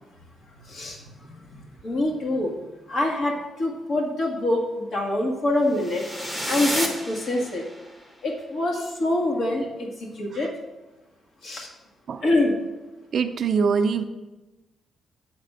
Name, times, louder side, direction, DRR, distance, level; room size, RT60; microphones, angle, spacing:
voice 1, 0.7-2.5 2.9-7.6 8.2-10.5 11.4-11.7 12.2-12.6, left 1 dB, 55° left, -1 dB, 1.7 m, -25 dB
sound 1, 5.7-7.9, equal, 15° left, 1.1 m, -31 dB
voice 2, 13.1-14.0, right 5 dB, 50° right, 7 dB, 0.5 m, -23 dB
8.7 x 4.1 x 6.6 m, 1.1 s
cardioid pair, 150°, 0 cm